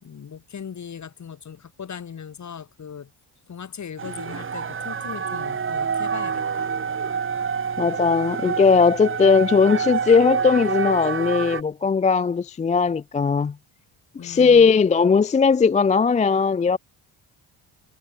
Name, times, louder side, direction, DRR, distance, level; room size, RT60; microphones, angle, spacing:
voice 1, 0.0-3.1 3.5-6.8 14.2-14.7, left 7 dB, 35° left, 1.2 m, -38 dB
sound 1, 4.0-11.6, right 6 dB, 25° right, 0.9 m, -27 dB
voice 2, 7.8-13.5 14.2-16.8, left 5 dB, 15° left, 0.3 m, -18 dB
supercardioid pair, 65°, 48 cm